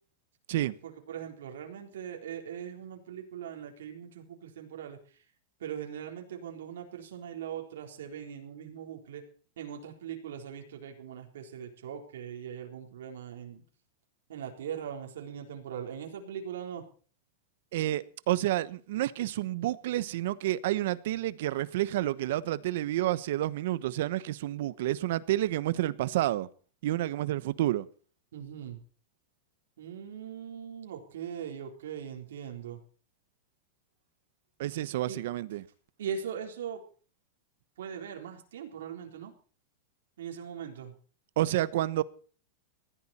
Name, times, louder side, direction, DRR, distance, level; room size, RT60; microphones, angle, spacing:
voice 1, 0.8-5.0 5.6-9.2 9.6-13.6 14.3-16.8 28.3-28.8 29.8-32.8 35.1-35.2 36.0-36.8 37.8-39.3 40.2-40.9, right 8 dB, 85° right, 4.0 m, -40 dB
voice 2, 17.7-26.5 26.8-27.9 34.6-35.6 41.4-42.0, right 14 dB, 65° right, 1.0 m, -29 dB
19.5 x 14.5 x 4.4 m
supercardioid pair, 150°, 0 cm